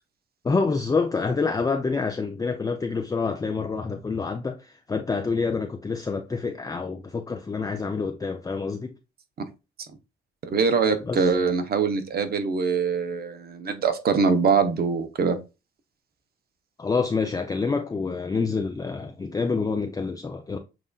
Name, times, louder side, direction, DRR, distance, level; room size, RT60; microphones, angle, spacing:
voice 1, 0.4-9.0 11.0-11.3 16.8-20.6, left 4 dB, 20° left, 0.4 m, -27 dB
voice 2, 10.4-15.4, right 5 dB, 50° right, 0.8 m, -23 dB
7.3 x 2.5 x 2.3 m
cardioid pair, 90°, 20 cm